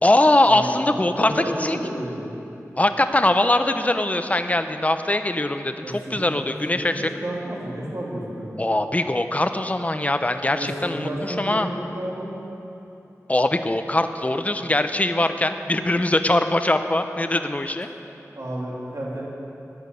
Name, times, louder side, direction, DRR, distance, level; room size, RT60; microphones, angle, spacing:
voice 1, 0.0-1.3 1.6-1.8 2.8-7.1 8.6-11.7 13.3-17.9, left 1 dB, 25° left, 8 dB, 0.8 m, -22 dB
voice 2, 1.0-2.3 5.8-6.3 6.8-8.6 10.5-12.3 18.3-19.2, right 1 dB, 60° right, -4 dB, 2.8 m, -31 dB
14.5 x 10.0 x 6.8 m, 2.9 s
wide cardioid pair, 60°, 6 cm